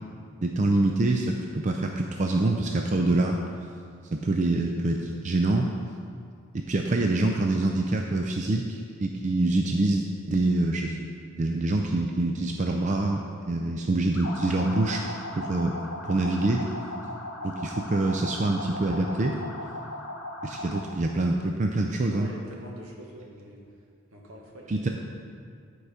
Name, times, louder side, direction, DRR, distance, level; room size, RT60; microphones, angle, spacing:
voice 1, 0.4-3.4 4.1-5.7 6.7-11.0 11.3-15.0 15.4-15.8 16.0-16.6 17.4-19.4 20.4-22.3 24.7-24.9, right 2 dB, 35° right, 2 dB, 0.4 m, -25 dB
sound 1, 14.1-21.0, left 1 dB, 70° left, 1.2 m, -37 dB
voice 2, 22.1-23.6 24.1-24.9, right 1 dB, 75° right, -2 dB, 1.5 m, -44 dB
10.5 x 4.7 x 5.0 m, 2.3 s
head